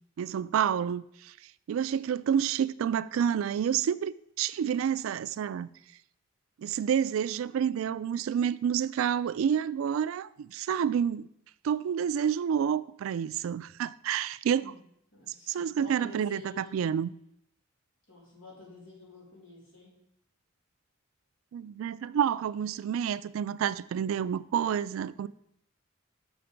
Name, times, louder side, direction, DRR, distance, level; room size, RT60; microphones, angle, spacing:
voice 1, 0.2-5.7 6.6-11.3 11.6-14.7 15.5-17.1 21.5-25.3, right 8 dB, 75° right, 0.3 m, -29 dB
voice 2, 15.1-16.7 18.1-20.0, left 1 dB, 70° left, 3.1 m, -49 dB
6.8 x 5.6 x 5.1 m
head